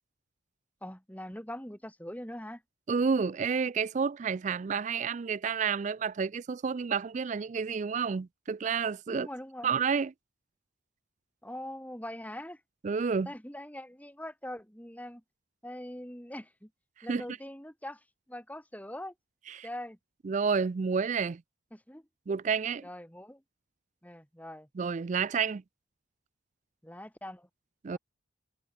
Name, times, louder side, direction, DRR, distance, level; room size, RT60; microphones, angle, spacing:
voice 1, 0.8-2.6 9.1-9.7 11.4-12.6 13.2-15.2 15.6-16.7 17.0-19.1 19.6-20.0 21.7-22.1 22.8-23.4 24.0-24.7 26.8-27.5 27.9-28.0, left 1 dB, 5° left, 3.1 m, -42 dB
voice 2, 2.9-9.3 9.6-10.1 12.8-13.3 17.1-17.2 19.5-19.7 20.2-21.4 22.3-22.9 24.8-25.6 27.8-28.0, right 5 dB, 35° right, 0.3 m, -30 dB
head